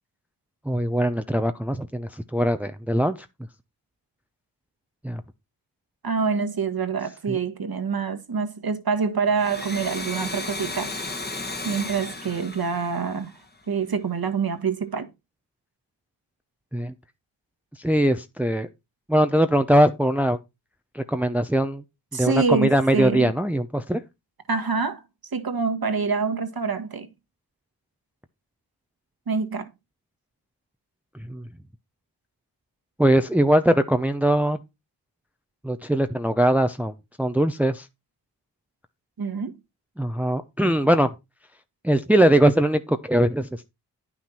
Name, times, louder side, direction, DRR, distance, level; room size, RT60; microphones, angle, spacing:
voice 1, 0.7-3.2 5.0-5.2 7.3-7.4 16.7-16.9 17.8-18.7 19.1-20.4 20.9-21.8 22.1-24.0 31.3-31.5 33.0-34.6 35.6-37.9 40.0-41.1 41.8-43.7, right 1 dB, 5° right, 0.7 m, -21 dB
voice 2, 6.0-11.1 11.6-13.4 13.7-15.1 22.1-23.3 24.5-25.0 25.3-27.1 29.3-29.7 39.2-39.6, right 5 dB, 55° right, 1.6 m, -26 dB
Domestic sounds home sounds, 9.3-13.8, left 2 dB, 20° left, 1.5 m, -34 dB
9.6 x 6.1 x 4.3 m
cardioid pair, 45°, 43 cm